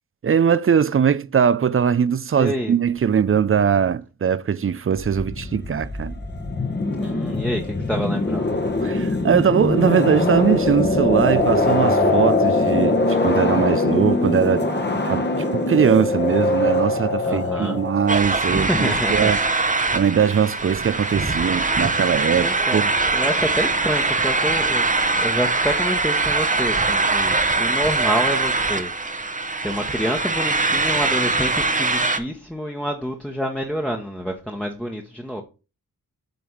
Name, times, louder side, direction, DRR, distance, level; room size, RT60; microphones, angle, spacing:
voice 1, 0.2-6.1 8.8-14.7 15.0-19.4 19.9-22.9, right 7 dB, 40° right, 0.5 m, -21 dB
voice 2, 2.4-2.7 7.0-8.5 17.2-17.8 18.5-19.3 19.8-20.0 22.4-22.8 23.1-24.9 25.2-28.9 29.6-35.4, equal, 5° left, 1.3 m, -27 dB
sound 1, 5.0-18.4, left 2 dB, 30° left, 1.3 m, -22 dB
sound 2, 18.1-32.2, right 3 dB, 20° right, 1.0 m, -22 dB
7.9 x 3.4 x 5.6 m
cardioid pair, 50°, 35 cm